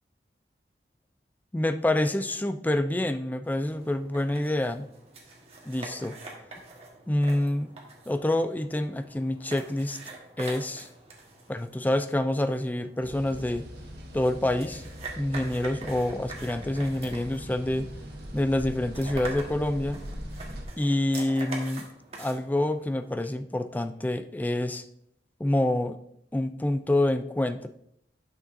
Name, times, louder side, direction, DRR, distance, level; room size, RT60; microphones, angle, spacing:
voice 1, 1.5-4.9 5.7-6.2 7.1-7.7 8.1-10.0 10.4-10.9 11.5-13.7 14.1-14.8 15.2-17.9 18.3-20.0 20.8-21.9 22.2-24.8 25.4-26.0 26.3-27.7, left 1 dB, 10° left, 10 dB, 0.3 m, -27 dB
sound 1, 3.4-23.3, right 3 dB, 35° right, 1.5 m, -45 dB
sound 2, 13.0-20.6, equal, 65° right, 1.5 m, -41 dB
10.0 x 6.3 x 2.7 m, 0.75 s
head